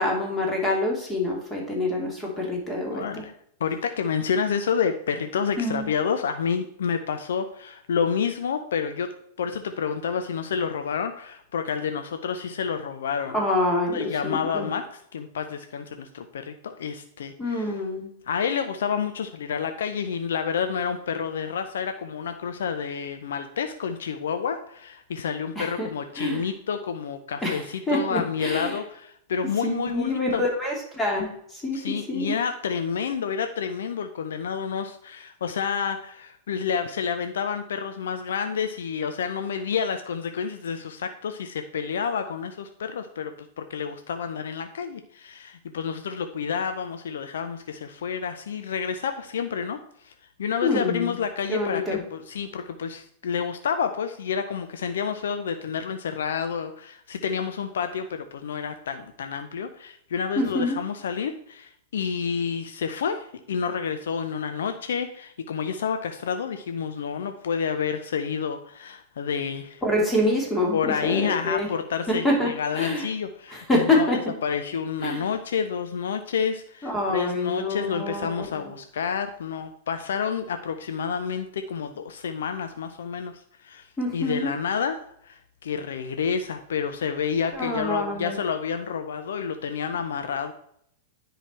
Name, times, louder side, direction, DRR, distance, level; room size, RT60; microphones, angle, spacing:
voice 1, 0.0-3.2 5.6-5.9 13.3-14.7 17.4-18.1 25.6-25.9 26.2-26.4 27.4-28.8 29.6-32.3 50.6-51.1 51.5-52.0 60.4-60.8 69.8-71.7 72.1-73.0 73.5-74.2 75.0-75.2 76.8-78.7 84.0-84.5 87.5-88.4, left 1 dB, 10° left, -1 dB, 2.9 m, -26 dB
voice 2, 2.9-3.3 3.6-9.1 9.4-13.4 13.9-17.7 18.3-30.4 31.7-50.1 50.4-69.8 70.7-74.1 74.4-83.9 84.1-90.5, left 6 dB, 65° left, 8 dB, 0.6 m, -29 dB
9.9 x 5.0 x 4.3 m, 0.70 s
figure-of-eight pair, 100°, 0 cm